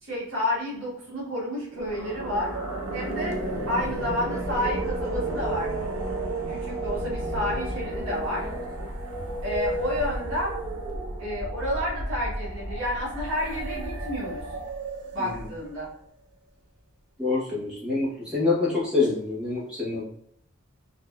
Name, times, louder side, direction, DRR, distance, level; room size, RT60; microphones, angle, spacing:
voice 1, 0.0-2.6 2.9-3.4 3.7-5.8 6.5-8.5 9.4-10.5 11.2-14.4 15.1-15.9, left 1 dB, 60° right, -7 dB, 1.3 m, -30 dB
sound 1, 1.7-15.9, right 1 dB, 75° right, 0.7 m, -32 dB
voice 2, 17.2-20.0, left 3 dB, 5° right, -8 dB, 1.1 m, -26 dB
3.8 x 2.7 x 2.4 m, 0.67 s
head